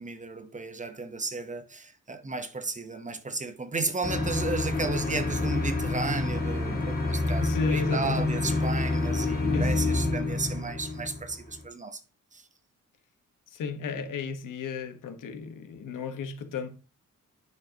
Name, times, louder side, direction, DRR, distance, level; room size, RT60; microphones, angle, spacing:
voice 1, 0.0-12.0 12.3-12.4, right 3 dB, 25° right, 0.9 m, -33 dB
sound 1, 4.0-11.6, left 2 dB, 30° left, 2.1 m, -28 dB
voice 2, 7.4-8.2 9.5-9.7 13.5-16.7, left 5 dB, 85° left, 1.3 m, -33 dB
9.7 x 6.4 x 2.9 m
wide cardioid pair, 135°, 31 cm